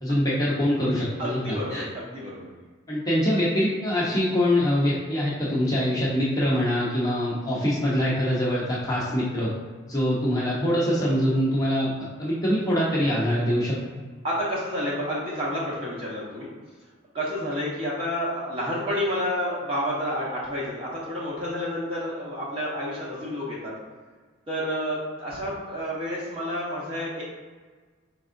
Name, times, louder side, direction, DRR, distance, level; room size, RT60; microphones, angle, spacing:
voice 1, 0.0-1.8 2.9-9.5 9.9-11.9 12.2-13.8, equal, 15° left, -7 dB, 0.8 m, -24 dB
voice 2, 1.2-2.5 14.2-16.5 17.1-23.7 24.5-27.2, equal, 25° right, -6 dB, 1.0 m, -30 dB
4.7 x 3.5 x 2.6 m, 1.4 s
head